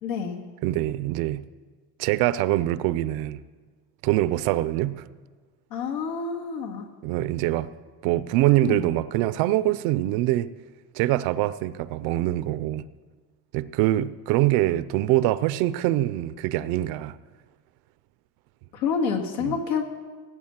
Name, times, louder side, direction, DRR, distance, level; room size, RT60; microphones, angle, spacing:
voice 1, 0.0-0.4 5.7-6.9 8.6-8.8 18.7-19.8, left 6 dB, 85° left, 3 dB, 2.4 m, -28 dB
voice 2, 0.6-1.4 2.0-3.4 4.0-5.1 7.0-7.7 8.0-10.5 10.9-12.8 13.5-17.1 19.4-19.6, right 15 dB, 50° right, 16 dB, 0.5 m, -24 dB
17.5 x 8.5 x 7.3 m, 1.5 s
cardioid pair, 150°, 48 cm